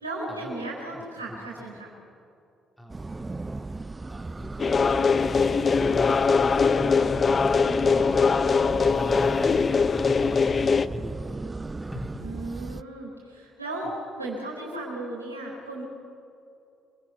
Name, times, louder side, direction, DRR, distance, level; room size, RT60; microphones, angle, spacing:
voice 1, 0.0-1.9 7.6-8.0 12.2-15.8, right 2 dB, 90° right, -3 dB, 4.3 m, -35 dB
voice 2, 0.9-1.4 2.8-8.3 8.8-11.4 11.8-12.2, left 1 dB, 5° left, 2 dB, 3.9 m, -39 dB
sound 1, 2.9-12.8, right 3 dB, 25° right, 0.5 m, -36 dB
sound 2, 4.6-10.9, left 5 dB, 40° left, 0.8 m, -22 dB
28.0 x 22.5 x 5.8 m, 2.6 s
figure-of-eight pair, 45°, 0 cm